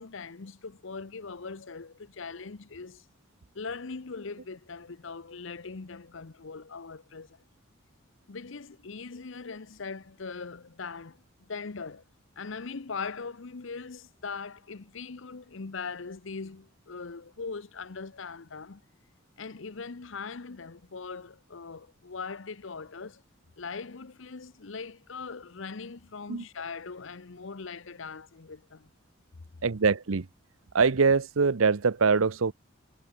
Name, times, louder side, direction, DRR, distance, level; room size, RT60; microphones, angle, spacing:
voice 1, 0.0-3.0 3.5-7.4 8.3-12.0 12.4-18.8 19.4-23.2 23.6-28.9, left 4 dB, 65° left, 0.8 m, -40 dB
voice 2, 29.6-30.3 30.7-32.5, right 5 dB, 75° right, 0.7 m, -23 dB
head